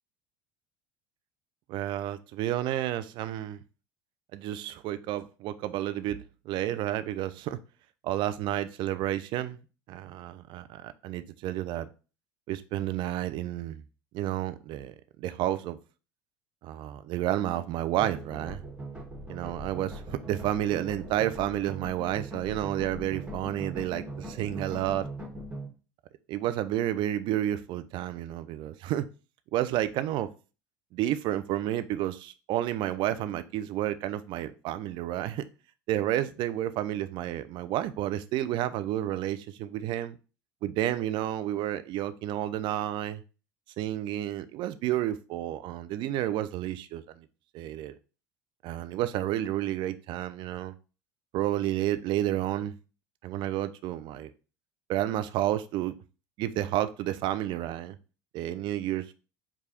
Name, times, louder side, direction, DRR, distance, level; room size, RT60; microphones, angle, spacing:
voice 1, 1.7-3.6 4.3-7.6 8.0-9.6 9.9-11.9 12.5-13.8 14.1-14.9 15.2-15.8 16.6-18.6 19.3-25.1 26.3-29.1 29.5-30.3 30.9-35.4 35.9-40.2 40.6-43.2 43.8-47.2 47.5-48.0 48.6-50.7 51.3-52.7 53.2-54.3 54.9-55.9 56.4-58.0 58.3-59.1, right 13 dB, 50° right, 0.4 m, -31 dB
sound 1, 18.0-25.7, right 1 dB, 10° right, 1.5 m, -40 dB
4.8 x 2.3 x 4.2 m
figure-of-eight pair, 70°, 11 cm